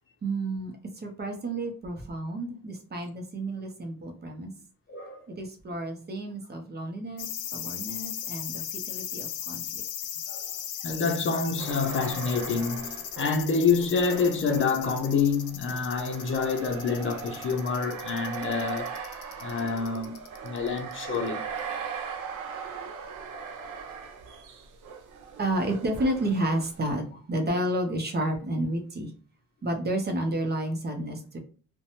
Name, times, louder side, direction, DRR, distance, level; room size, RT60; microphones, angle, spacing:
voice 1, 0.2-4.5 5.3-9.8 25.4-29.1 29.6-31.4, right 1 dB, 35° right, 0.7 m, -31 dB
voice 2, 4.9-5.2 10.3-18.9 19.4-20.2 20.4-21.5, left 5 dB, 40° left, 0.6 m, -27 dB
sound 1, 7.2-21.3 21.6-21.7, left 10 dB, 85° left, 0.5 m, -37 dB
sound 2, 11.6-27.0, right 6 dB, 85° right, 0.6 m, -39 dB
2.6 x 2.2 x 2.8 m
cardioid pair, 90°, 30 cm